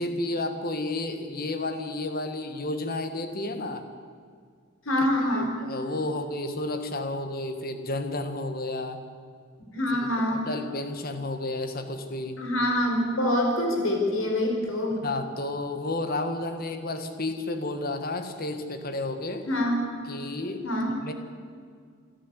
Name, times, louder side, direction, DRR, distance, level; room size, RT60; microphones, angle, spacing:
voice 1, 0.0-3.9 5.3-9.0 10.2-12.4 15.0-19.5 20.1-21.1, left 2 dB, 45° left, 8 dB, 1.7 m, -31 dB
voice 2, 4.8-5.5 9.7-10.4 12.4-15.0 19.5-19.8 20.6-21.0, left 1 dB, 75° left, 2 dB, 5.1 m, -25 dB
28.0 x 11.0 x 9.9 m, 2.1 s
head